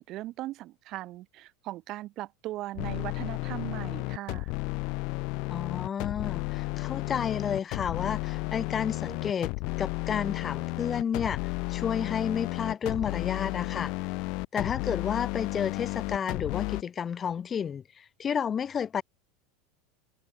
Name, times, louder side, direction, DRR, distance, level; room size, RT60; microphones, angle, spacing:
voice 1, 0.0-4.5, right 16 dB, 40° right, 6.7 m, -38 dB
sound 1, 2.8-16.8, left 28 dB, 55° left, 2.2 m, -33 dB
voice 2, 5.5-9.5 9.8-11.4 11.7-13.9 14.5-19.0, left 7 dB, 20° left, 5.0 m, -31 dB
supercardioid pair, 155°, 0 cm